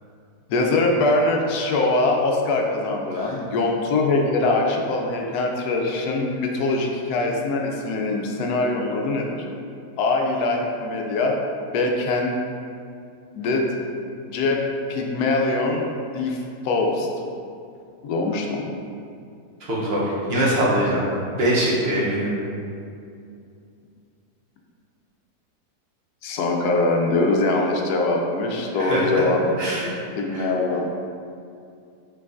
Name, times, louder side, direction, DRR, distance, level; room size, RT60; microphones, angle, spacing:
voice 1, 0.5-9.4 10.0-11.3 11.7-12.4 13.3-13.7 14.2-14.6 14.9-16.4 16.6-17.1 18.0-18.7 26.2-29.4 30.1-30.8, left 2 dB, 75° left, 1 dB, 1.1 m, -22 dB
voice 2, 19.6-21.0 21.4-22.3 28.8-29.2 29.6-29.9 30.3-30.5, right 1 dB, 50° right, -6 dB, 0.9 m, -22 dB
4.6 x 3.9 x 2.4 m, 2.5 s
omnidirectional pair, 1.7 m